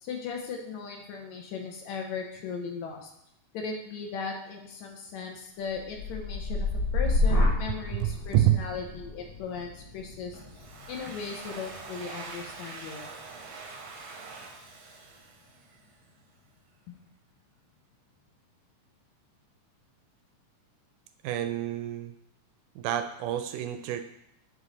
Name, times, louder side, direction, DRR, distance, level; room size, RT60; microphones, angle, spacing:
voice 1, 0.0-3.1 3.5-6.7 6.9-10.4 10.9-13.0 16.9-17.0, left 5 dB, 75° left, 2 dB, 2.0 m, -37 dB
sound 1, 5.7-13.7 14.2-14.6, left 2 dB, 55° left, 2.2 m, -31 dB
voice 2, 8.0-8.6 21.2-22.1 22.8-24.0, right 12 dB, 85° right, 8 dB, 2.0 m, -27 dB
Domestic sounds home sounds, 10.3-16.0, right 4 dB, 65° right, 1.2 m, -44 dB
9.0 x 3.2 x 3.9 m, 0.76 s
omnidirectional pair, 3.6 m